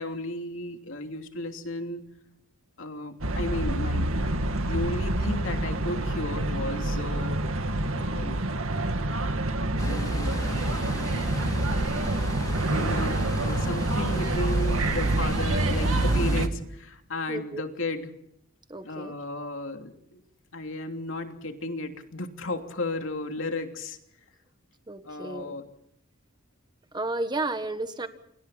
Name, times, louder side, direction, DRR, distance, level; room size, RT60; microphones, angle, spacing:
voice 1, 0.0-2.1 2.8-7.4 7.9-8.4 9.8-10.4 12.7-18.1 18.8-20.2 20.5-24.0 25.0-25.7, left 2 dB, 65° left, 5 dB, 3.0 m, -34 dB
sound 1, 3.2-16.5, right 1 dB, 75° right, 2.1 m, -27 dB
sound 2, 9.8-16.5, left 1 dB, 20° left, 2.2 m, -38 dB
voice 2, 17.3-17.7 18.7-19.1 24.9-25.5 26.9-28.1, right 2 dB, 20° right, 9 dB, 1.4 m, -32 dB
29.0 x 26.0 x 4.2 m, 0.73 s
head